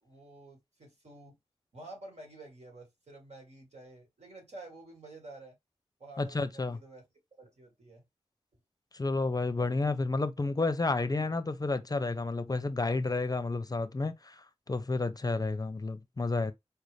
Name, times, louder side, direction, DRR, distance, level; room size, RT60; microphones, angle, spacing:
voice 1, 0.0-1.4 1.7-5.6 6.0-7.0 7.4-8.0, right 2 dB, 75° right, 1.9 m, -50 dB
voice 2, 6.2-6.8 8.9-16.5, left 3 dB, 35° left, 0.5 m, -31 dB
4.5 x 2.5 x 3.2 m
wide cardioid pair, 55°, 11 cm